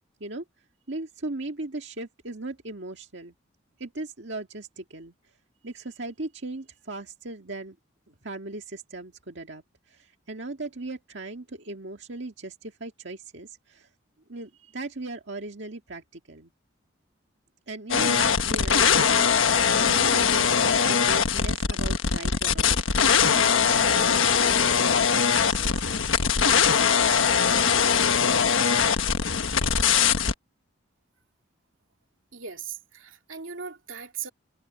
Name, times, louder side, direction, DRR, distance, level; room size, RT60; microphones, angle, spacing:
voice 1, 0.9-3.3 3.8-5.1 5.6-7.8 8.1-13.9 14.3-16.5 17.7-26.1, right 2 dB, 65° right, 1.9 m, -38 dB
sound 1, 17.9-30.3, left 6 dB, 80° left, 1.4 m, -21 dB
voice 2, 32.3-34.3, right 7 dB, 80° right, 2.6 m, -38 dB
head